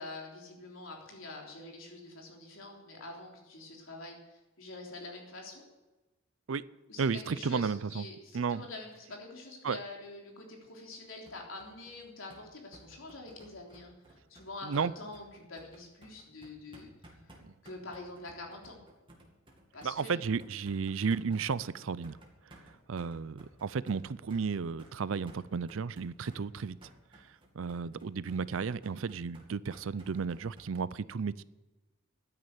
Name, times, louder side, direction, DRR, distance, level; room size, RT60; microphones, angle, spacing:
voice 1, 0.0-5.7 6.9-16.9 17.6-18.8 19.7-20.2, left 2 dB, 70° left, 0 dB, 3.5 m, -46 dB
voice 2, 7.0-8.0 8.3-8.6 9.6-9.8 14.6-14.9 19.8-22.2 22.9-26.8 27.6-31.4, right 5 dB, 70° right, 19 dB, 0.5 m, -33 dB
sound 1, 11.3-30.7, right 1 dB, 25° right, 2.5 m, -57 dB
12.5 x 9.8 x 8.2 m, 1.1 s
head